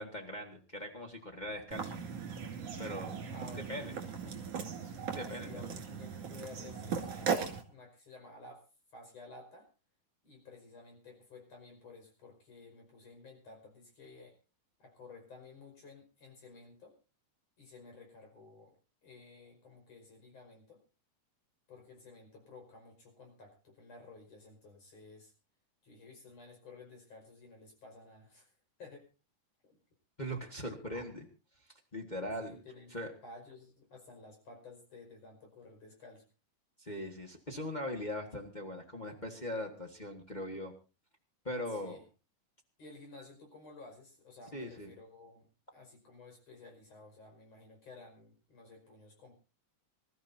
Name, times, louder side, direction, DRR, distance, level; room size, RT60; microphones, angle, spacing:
voice 1, 0.0-1.9 2.8-3.2 3.7-3.9 5.1-5.5 30.2-31.3 31.9-32.5 32.9-33.1 36.8-40.7 41.4-42.0 44.5-44.9, left 1 dB, 30° left, 1 dB, 0.8 m, -40 dB
sound 1, 1.7-7.6, right 6 dB, 55° right, 3.2 m, -38 dB
voice 2, 3.3-4.5 4.9-8.6 8.9-9.7 10.2-14.4 14.8-17.0 17.6-20.8 21.7-25.3 25.8-28.5 28.8-29.1 29.6-29.8 32.4-33.0 33.2-36.3 41.7-42.0 42.8-45.5 45.7-49.4, left 3 dB, 50° left, 2 dB, 6.3 m, -54 dB
26.0 x 14.0 x 2.7 m, 0.32 s
omnidirectional pair, 3.7 m